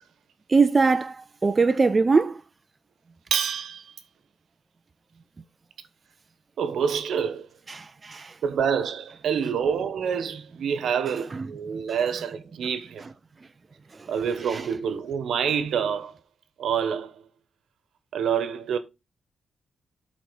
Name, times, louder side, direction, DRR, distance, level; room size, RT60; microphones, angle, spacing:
voice 1, 0.5-2.4 7.7-8.3 11.3-11.5 14.0-14.1 14.5-14.6, right 4 dB, 30° right, 0.5 m, -22 dB
voice 2, 3.3-3.9 6.6-7.5 8.4-13.1 14.1-16.2 16.6-17.2 18.1-18.8, right 7 dB, 80° right, 1.1 m, -27 dB
12.0 x 4.2 x 4.0 m
cardioid pair, 95°, 0 cm